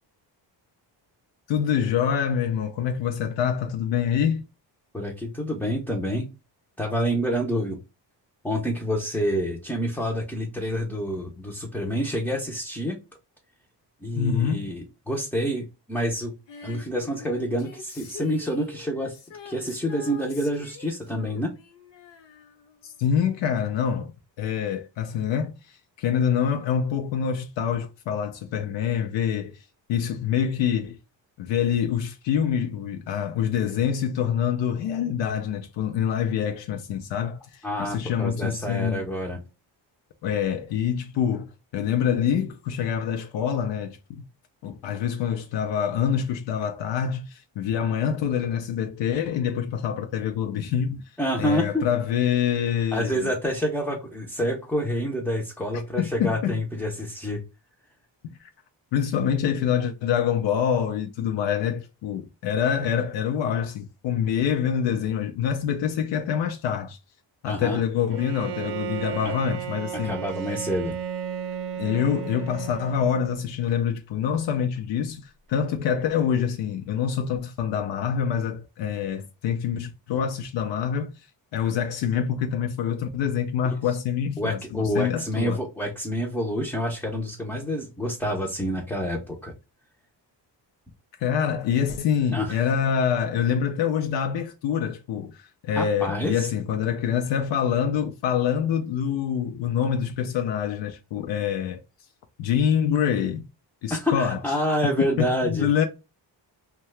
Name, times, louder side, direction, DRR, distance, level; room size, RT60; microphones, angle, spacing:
voice 1, 1.5-4.5 14.1-14.7 22.8-31.0 31.4-39.0 40.2-44.2 44.6-51.0 51.4-53.3 55.7-56.6 58.2-58.5 58.9-67.0 67.4-70.2 71.8-81.3 81.5-85.6 91.2-101.8 102.4-103.5 103.8-104.4 105.2-105.9, left 8 dB, 90° left, 0.6 m, -26 dB
voice 2, 4.9-6.3 6.8-7.8 8.4-13.0 14.0-16.3 16.6-19.1 19.4-21.5 37.6-39.4 51.2-51.8 52.9-57.4 67.5-67.8 69.2-69.3 69.9-71.0 84.4-89.5 92.3-92.6 95.7-96.5 103.9-105.7, equal, 5° left, 0.4 m, -28 dB
Female singing, 16.5-23.1 23.4-23.5, left 6 dB, 70° left, 0.9 m, -44 dB
Bowed string instrument, 68.1-73.5, right 9 dB, 65° right, 0.5 m, -34 dB
2.7 x 2.2 x 3.1 m
cardioid pair, 145°, 43 cm